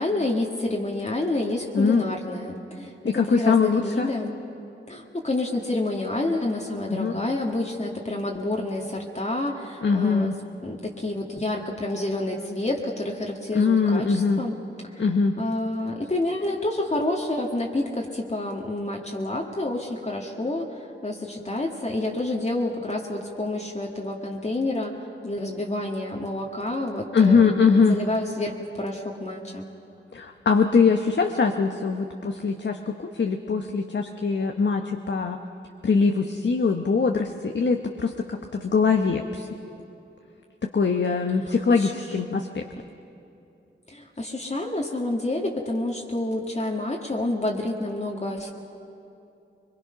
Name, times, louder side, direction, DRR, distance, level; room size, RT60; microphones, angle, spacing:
voice 1, 0.0-4.3 4.9-10.3 10.6-14.5 14.9-15.0 15.4-20.7 21.0-25.0 25.2-27.5 27.9-29.7 41.5-41.9 43.9-48.5, left 2 dB, 35° left, -1 dB, 1.8 m, -28 dB
voice 2, 3.0-4.1 6.9-7.1 9.8-10.4 13.5-14.4 15.0-15.3 27.1-28.0 30.1-35.4 35.8-39.5 40.6-42.6, left 5 dB, 60° left, 4 dB, 0.9 m, -22 dB
22.5 x 22.5 x 5.7 m, 2.7 s
cardioid pair, 55°, 21 cm